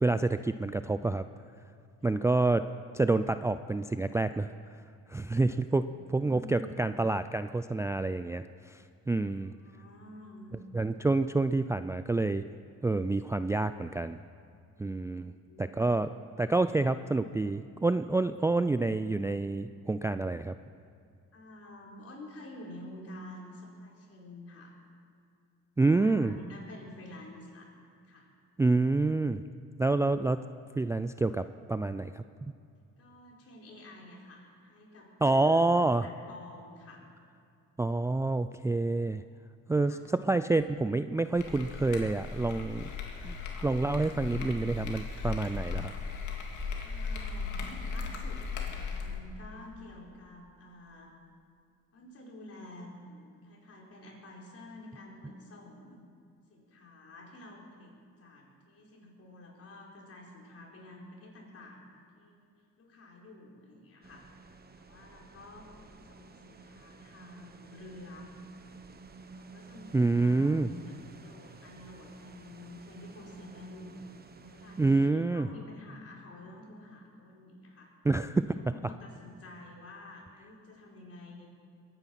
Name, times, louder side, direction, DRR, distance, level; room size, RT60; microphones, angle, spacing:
voice 1, 0.0-1.2 2.0-2.6 2.9-4.5 5.1-8.4 8.7-8.8 9.1-9.5 10.7-12.4 12.8-14.2 14.8-15.3 15.6-16.1 16.4-20.6 25.8-26.3 28.6-29.4 29.8-30.4 30.8-32.5 35.2-36.0 37.8-39.2 39.7-42.9 43.2-43.4 43.6-45.9 69.9-70.7 74.8-75.5 78.0-78.6, right 2 dB, 10° right, 11 dB, 0.3 m, -28 dB
voice 2, 5.7-6.8 9.2-10.5 15.1-15.9 21.3-24.7 25.8-27.7 28.0-28.3 33.0-37.1 39.8-40.0 46.8-51.1 51.9-56.0 56.5-57.9 58.2-62.4 62.8-64.3 64.8-68.3 69.3-74.0 74.4-77.9 78.5-81.5, left 1 dB, 50° left, -2 dB, 4.2 m, -50 dB
sound 1, 41.3-49.2, left 5 dB, 75° left, 2.2 m, -37 dB
sound 2, 64.0-75.1, right 3 dB, 30° right, 1.2 m, -51 dB
22.0 x 9.8 x 5.8 m, 2.4 s
cardioid pair, 90°, 30 cm